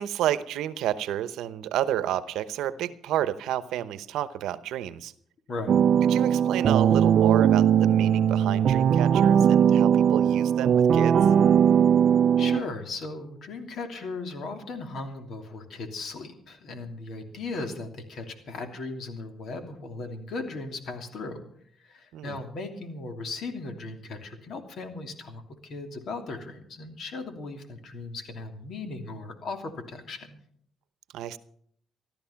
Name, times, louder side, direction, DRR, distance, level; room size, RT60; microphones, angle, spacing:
voice 1, 0.0-5.1 6.1-11.2 22.1-22.4 31.1-31.4, right 11 dB, 85° right, 14 dB, 0.9 m, -30 dB
voice 2, 5.5-5.9 12.4-21.4 21.8-30.4, left 3 dB, 65° left, 5 dB, 2.9 m, -37 dB
sound 1, 5.7-12.6, right 8 dB, 60° right, 0.5 m, -20 dB
15.0 x 12.5 x 5.8 m, 0.63 s
cardioid pair, 90°, 0 cm